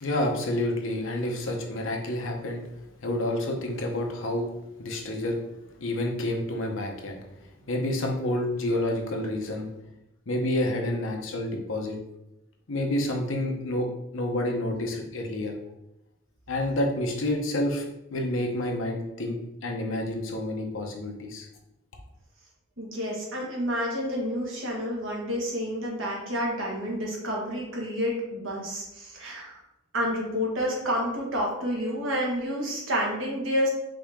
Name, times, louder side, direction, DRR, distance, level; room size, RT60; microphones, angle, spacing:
voice 1, 0.0-2.6 3.0-4.5 4.8-5.4 5.8-7.2 7.7-9.7 10.3-12.0 12.7-13.9 14.1-15.5 16.5-17.8 18.1-21.5, left 1 dB, 70° left, 2 dB, 0.8 m, -29 dB
voice 2, 22.8-29.6 29.9-33.7, equal, 70° right, -2 dB, 1.4 m, -29 dB
5.0 x 2.9 x 3.6 m, 0.90 s
head